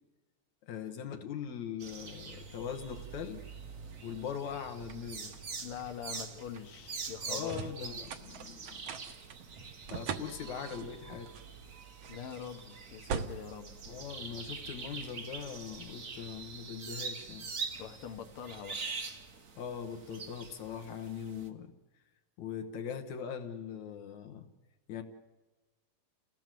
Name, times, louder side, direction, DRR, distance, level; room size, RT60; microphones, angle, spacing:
voice 1, 0.6-3.4 4.0-5.3 7.3-8.8 9.9-11.3 13.9-17.5 19.6-21.7 22.4-24.5 24.9-25.0, left 7 dB, 70° left, 6 dB, 2.7 m, -41 dB
sound 1, 1.8-21.5, right 5 dB, 45° right, 1.0 m, -45 dB
sound 2, 2.4-14.7, right 6 dB, 60° right, 2.0 m, -45 dB
voice 2, 5.6-7.6 12.1-13.7 17.8-18.8, left 8 dB, 55° left, 4 dB, 2.0 m, -43 dB
29.5 x 16.5 x 7.7 m, 1.1 s
omnidirectional pair, 3.5 m